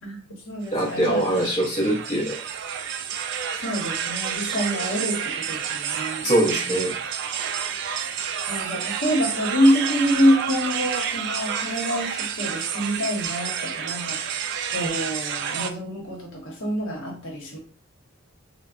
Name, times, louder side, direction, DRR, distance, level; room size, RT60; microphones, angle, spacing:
voice 1, 0.0-1.4 3.6-6.3 8.5-17.6, equal, 60° left, -1 dB, 1.0 m, -26 dB
voice 2, 0.7-2.4 6.2-7.0, right 1 dB, 35° left, -6 dB, 0.8 m, -23 dB
sound 1, 0.7-15.7, right 8 dB, 55° right, 0.3 m, -30 dB
3.3 x 2.1 x 2.5 m, 0.40 s
head